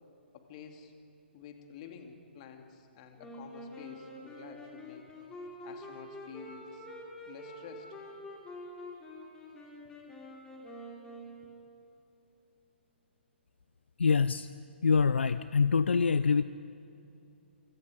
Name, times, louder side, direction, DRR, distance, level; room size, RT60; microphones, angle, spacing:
voice 1, 0.3-0.9 1.3-5.0 5.6-6.9 7.3-7.9, left 7 dB, 35° left, 4 dB, 2.5 m, -50 dB
Wind instrument woodwind instrument, 3.2-11.9, left 1 dB, 10° left, 4.1 m, -47 dB
voice 2, 14.0-14.5 14.8-16.4, left 5 dB, 70° left, 14 dB, 0.6 m, -25 dB
27.0 x 25.5 x 5.2 m, 2.8 s
figure-of-eight pair, 130°, 6 cm